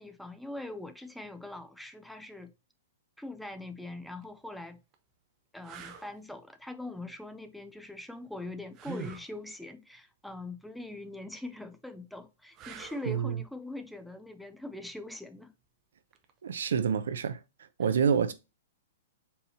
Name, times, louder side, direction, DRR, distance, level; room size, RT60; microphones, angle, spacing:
voice 1, 0.0-2.5 3.2-4.8 5.5-15.5, left 2 dB, ahead, 0.4 m, -42 dB
sound 1, 4.0-4.2 4.9-5.0 5.6-6.1 8.7-9.3 12.5-13.2 16.1-16.3, right 6 dB, 30° right, 0.7 m, -43 dB
voice 2, 13.1-13.4 16.4-17.4 17.8-18.3, right 7 dB, 75° right, 0.6 m, -27 dB
4.4 x 3.4 x 2.8 m
hypercardioid pair, 130°, 0 cm